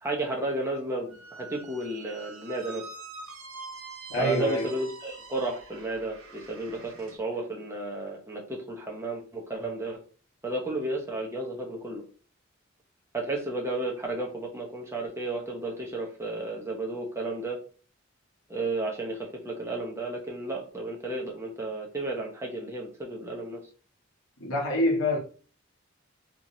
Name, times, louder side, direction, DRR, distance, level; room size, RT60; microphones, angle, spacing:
voice 1, 0.0-2.9 4.2-10.0 10.4-12.0 13.1-17.6 18.5-23.6, right 2 dB, 15° right, 0.9 m, -33 dB
Squeak, 1.1-7.2, right 3 dB, 90° right, 0.9 m, -45 dB
voice 2, 4.1-4.7 24.4-25.2, left 1 dB, 85° left, 1.2 m, -26 dB
3.6 x 3.0 x 2.7 m
head